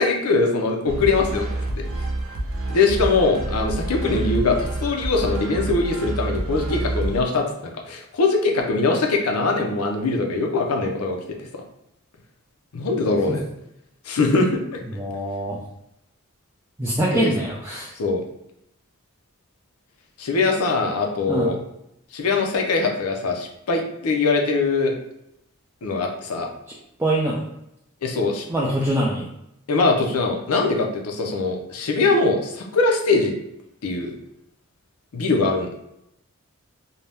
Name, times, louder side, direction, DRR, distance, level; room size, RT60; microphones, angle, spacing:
voice 1, 0.0-1.5 1.8-1.9 2.7-7.5 7.9-11.6 12.7-13.4 14.1-14.8 17.1-17.3 18.0-18.2 20.2-21.6 22.1-24.9 25.8-26.5 28.0-28.5 29.7-33.3 33.8-34.1 35.1-35.7, left 3 dB, 85° left, 2 dB, 0.6 m, -22 dB
sound 1, 0.9-7.2, right 1 dB, 65° right, 0.7 m, -28 dB
voice 2, 14.9-15.6 16.8-17.9 21.3-21.5 27.0-27.4 28.5-29.3, right 1 dB, 10° right, -4 dB, 0.3 m, -23 dB
2.7 x 2.2 x 3.3 m, 0.82 s
head